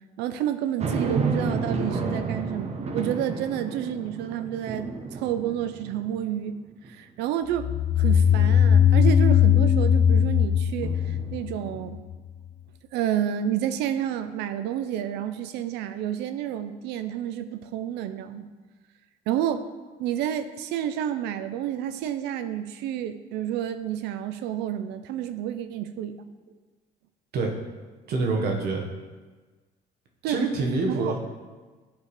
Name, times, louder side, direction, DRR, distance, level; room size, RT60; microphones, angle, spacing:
voice 1, 0.2-6.6 6.9-7.7 8.0-12.0 12.9-18.5 19.3-19.7 20.0-26.2 30.2-30.4 30.9-31.1, right 10 dB, 90° right, 11 dB, 0.5 m, -30 dB
sound 1, 0.8-6.3 6.8-6.9 10.8-11.9, right 4 dB, 40° right, 0.8 m, -31 dB
sound 2, 7.6-12.1, left 8 dB, 45° left, 0.4 m, -19 dB
voice 2, 28.1-28.8 30.2-31.2, right 3 dB, 70° right, 1 dB, 1.3 m, -26 dB
10.0 x 3.7 x 4.9 m, 1.3 s
cardioid pair, 110°, 17 cm